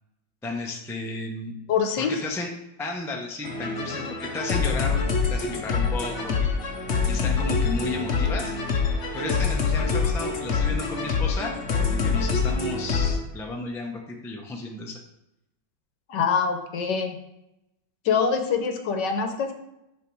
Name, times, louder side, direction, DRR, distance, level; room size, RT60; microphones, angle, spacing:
voice 1, 0.4-1.5 2.0-2.5 2.8-5.0 5.3-6.5 7.0-8.5 9.1-15.0, left 2 dB, 5° left, 0 dB, 0.4 m, -33 dB
voice 2, 1.7-2.1 16.1-17.2 18.0-19.5, left 6 dB, 65° left, 6 dB, 1.5 m, -24 dB
sound 1, 3.4-13.2, left 5 dB, 50° left, 0.9 m, -25 dB
10.5 x 3.8 x 4.8 m, 0.89 s
omnidirectional pair, 2.1 m